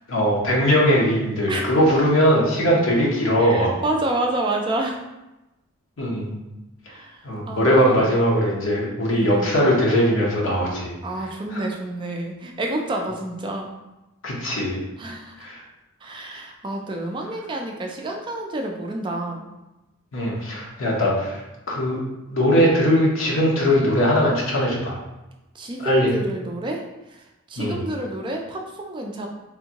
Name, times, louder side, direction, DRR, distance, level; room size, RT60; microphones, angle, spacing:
voice 1, 0.1-3.7 6.0-6.3 7.2-10.9 11.5-11.6 14.2-14.8 15.4-15.6 20.1-21.4 21.7-22.0 22.3-25.0 25.8-26.1 27.6-27.8, equal, 70° left, -3 dB, 0.8 m, -20 dB
voice 2, 3.4-5.0 6.9-8.2 9.1-9.6 11.0-13.8 15.0-15.5 16.0-19.5 25.5-26.8 27.1-29.3, right 1 dB, 20° right, 1 dB, 0.3 m, -29 dB
3.6 x 2.6 x 2.8 m, 0.99 s
head